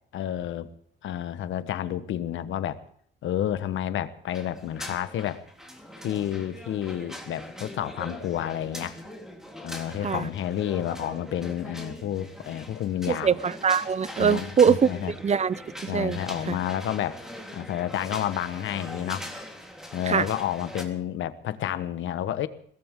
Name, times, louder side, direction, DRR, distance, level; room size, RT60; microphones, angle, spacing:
voice 1, 0.1-0.7 1.0-2.8 3.2-5.4 6.0-9.0 9.6-13.4 14.2-15.1 15.9-17.2 17.5-19.3 19.9-22.5, left 11 dB, 75° left, 1.2 m, -30 dB
sound 1, 4.3-20.8, equal, ahead, 3.6 m, -42 dB
voice 2, 13.1-14.9 15.2-15.6 15.8-16.2 16.5-16.6 20.1-20.3, right 7 dB, 35° right, 0.7 m, -22 dB
22.0 x 17.5 x 3.7 m
cardioid pair, 90°, 20 cm